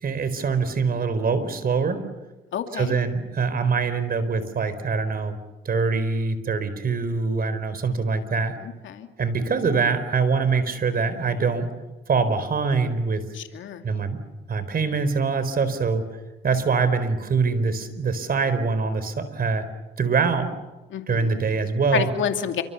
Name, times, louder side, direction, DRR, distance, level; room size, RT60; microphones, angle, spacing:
voice 1, 0.0-2.0 2.7-5.4 5.6-8.5 9.2-11.7 12.1-13.2 13.8-14.2 14.5-16.1 16.4-19.7 20.0-20.5 21.1-22.1, right 4 dB, 50° right, 12 dB, 4.3 m, -24 dB
voice 2, 2.5-2.9 8.6-9.1 13.3-13.8 20.9-21.4 21.9-22.6, left 8 dB, 75° left, 6 dB, 2.5 m, -29 dB
29.0 x 25.5 x 7.1 m, 1.1 s
cardioid pair, 90°, 20 cm